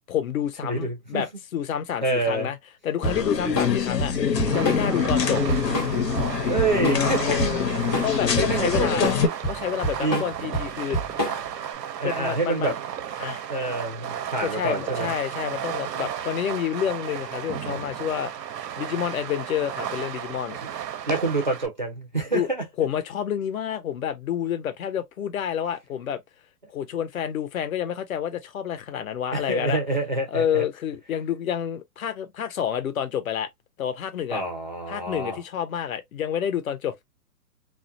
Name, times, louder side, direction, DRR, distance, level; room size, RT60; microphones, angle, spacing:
voice 1, 0.1-2.6 2.8-4.2 4.5-5.4 7.2-7.7 8.0-9.1 9.5-11.0 12.0-12.7 13.2-13.5 14.4-18.3 18.8-20.6 22.3-22.5 22.8-26.2 26.7-29.8 30.3-33.5 33.8-34.4 34.9-37.0, left 9 dB, 60° left, 0.7 m, -29 dB
voice 2, 0.6-1.2 2.0-2.5 6.5-7.6 8.4-9.1 10.0-10.3 12.0-12.7 13.5-15.1 21.1-22.6 29.3-30.7 34.3-35.4, right 2 dB, 30° right, 0.4 m, -27 dB
sound 1, 3.0-9.3, left 6 dB, 85° left, 0.9 m, -25 dB
Drum kit / Drum, 3.0-11.6, equal, 15° left, 0.7 m, -29 dB
Fireworks, 4.4-21.7, right 9 dB, 90° right, 0.7 m, -34 dB
2.4 x 2.1 x 2.5 m
hypercardioid pair, 165°, 48 cm